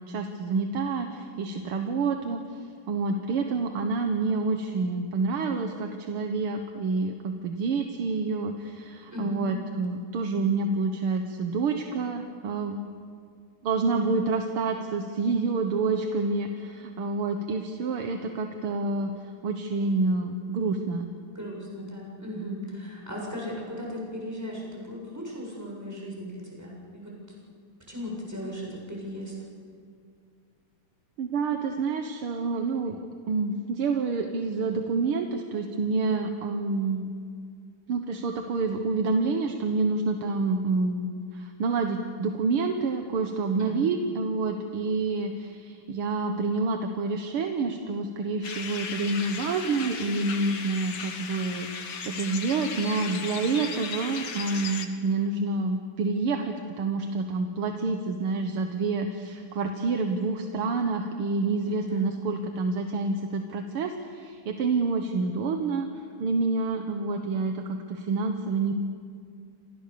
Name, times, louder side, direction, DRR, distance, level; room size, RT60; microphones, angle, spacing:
voice 1, 0.1-2.6 2.9-12.8 13.6-19.1 19.4-21.1 31.2-33.0 33.3-37.1 37.9-65.9 66.2-68.7, right 3 dB, 85° right, 5 dB, 2.2 m, -28 dB
voice 2, 9.1-9.6 21.3-27.1 27.9-29.3 43.6-43.9 61.6-62.1, equal, 5° right, -2 dB, 7.2 m, -37 dB
sound 1, 48.4-54.9, left 5 dB, 65° left, 2.5 m, -36 dB
30.0 x 26.0 x 6.9 m, 2.2 s
omnidirectional pair, 2.3 m